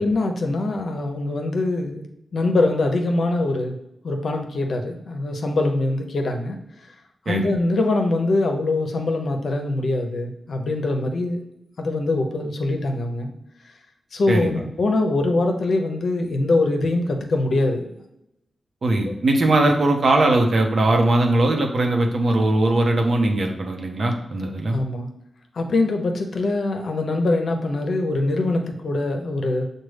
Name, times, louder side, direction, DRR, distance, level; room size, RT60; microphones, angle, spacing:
voice 1, 0.0-2.0 2.3-3.8 4.0-6.6 7.3-11.4 11.8-13.3 14.1-17.9 19.0-19.1 21.6-21.7 24.7-25.1 25.5-29.7, left 2 dB, 75° left, 4 dB, 0.6 m, -23 dB
voice 2, 14.3-14.6 18.8-24.8, right 2 dB, 65° right, 2 dB, 0.8 m, -20 dB
6.1 x 2.2 x 3.2 m, 0.84 s
cardioid pair, 40°, 0 cm